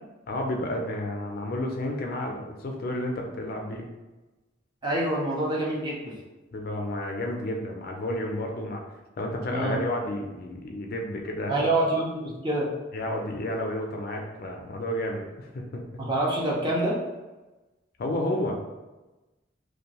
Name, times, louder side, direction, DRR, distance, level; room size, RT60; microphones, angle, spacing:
voice 1, 0.3-3.9 6.5-8.8 9.2-11.7 12.9-15.8 18.0-18.5, left 1 dB, 50° left, 1 dB, 0.4 m, -31 dB
voice 2, 4.8-6.1 9.5-9.8 11.5-12.7 16.0-17.0, right 1 dB, 25° right, -3 dB, 0.5 m, -26 dB
2.6 x 2.2 x 2.9 m, 1.1 s
head